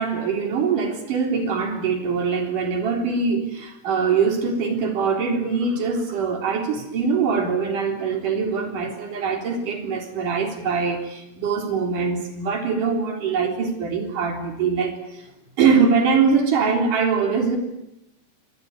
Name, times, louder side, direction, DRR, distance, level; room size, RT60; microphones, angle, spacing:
voice 1, 0.0-15.3 15.6-17.6, right 5 dB, 50° right, 4 dB, 5.0 m, -23 dB
25.0 x 20.0 x 9.8 m, 0.86 s
omnidirectional pair, 5.0 m